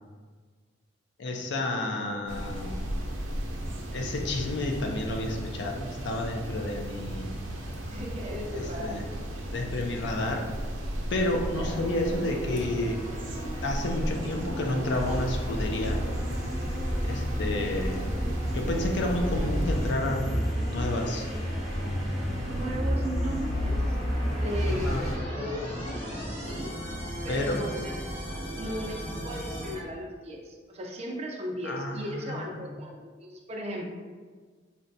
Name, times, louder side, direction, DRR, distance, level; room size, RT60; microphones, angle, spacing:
voice 1, 1.2-2.8 3.9-7.3 8.5-9.1 9.5-10.4 11.1-13.0 13.6-16.0 17.0-18.1 18.5-21.3 24.7-25.1 27.3-27.6 31.6-32.7, left 2 dB, 65° left, 2 dB, 0.4 m, -30 dB
sound 1, 2.3-19.9, equal, 85° right, 0.6 m, -36 dB
voice 2, 7.9-9.0 11.5-11.7 22.5-23.8 24.2-26.7 27.2-28.0 28.6-33.8, equal, 35° right, 0 dB, 0.5 m, -37 dB
sound 2, 11.6-29.7, equal, 35° left, 1.0 m, -38 dB
sound 3, 15.0-25.2, equal, ahead, 0.9 m, -30 dB
3.9 x 2.2 x 2.6 m, 1.5 s
head